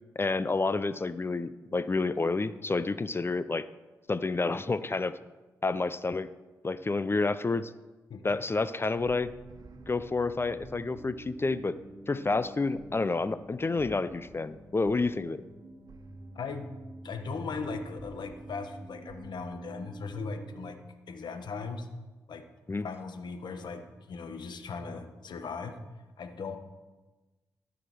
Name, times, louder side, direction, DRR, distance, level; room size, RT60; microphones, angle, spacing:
voice 1, 0.2-3.7 4.1-5.1 5.6-6.3 6.6-7.7 8.2-9.3 9.9-11.8 12.1-15.4 22.7-22.9, left 3 dB, 30° left, 14 dB, 0.5 m, -29 dB
voice 2, 8.1-8.4 16.3-16.7 17.0-20.8 21.1-21.9 22.3-22.4 22.8-25.8 26.2-26.6, left 4 dB, 70° left, 7 dB, 1.2 m, -38 dB
sound 1, 9.0-20.7, right 2 dB, 55° right, 1.5 m, -48 dB
13.0 x 5.0 x 6.2 m, 1.2 s
supercardioid pair, 45°, 8 cm